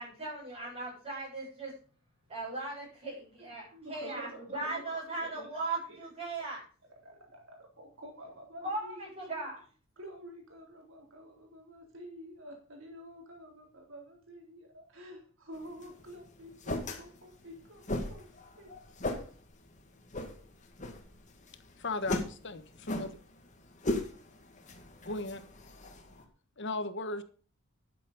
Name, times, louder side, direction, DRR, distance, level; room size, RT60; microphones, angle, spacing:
voice 1, 0.0-1.7 2.3-6.6 8.6-9.6, right 2 dB, 30° right, -9 dB, 7.3 m, -38 dB
voice 2, 3.7-4.8 5.2-5.5 6.4-6.5 7.0-9.5 10.0-18.7, equal, 70° right, 1 dB, 3.8 m, -49 dB
sound 1, 15.5-26.2, left 1 dB, 35° left, 2.0 m, -39 dB
voice 3, 21.8-23.2 25.0-25.5 26.6-27.2, left 2 dB, 60° left, 11 dB, 1.3 m, -36 dB
12.0 x 7.7 x 5.3 m, 0.42 s
head